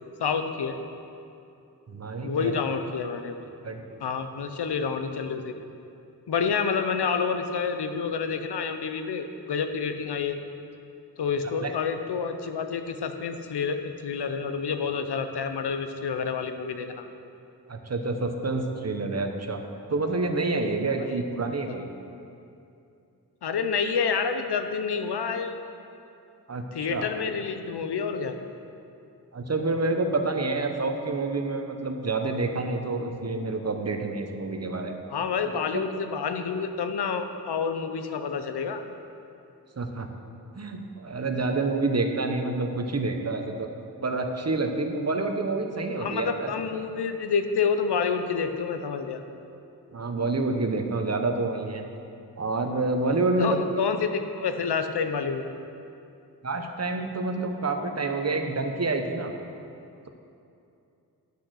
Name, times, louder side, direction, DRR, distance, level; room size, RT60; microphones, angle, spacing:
voice 1, 0.2-0.8 2.2-3.5 4.0-5.6 6.3-10.4 11.2-17.0 21.0-21.1 23.4-25.5 26.7-28.4 35.1-38.8 46.0-49.2 53.4-55.4, left 6 dB, 85° left, 7 dB, 0.7 m, -28 dB
voice 2, 1.9-2.5 3.6-4.0 11.6-11.7 17.7-19.6 19.9-21.9 26.5-27.1 29.3-35.0 35.7-35.8 39.8-40.1 40.5-43.7 44.0-46.5 49.9-51.8 52.4-53.6 56.4-59.3, right 3 dB, 40° right, 5 dB, 0.9 m, -28 dB
8.3 x 6.3 x 6.3 m, 2.7 s
cardioid pair, 55°, 39 cm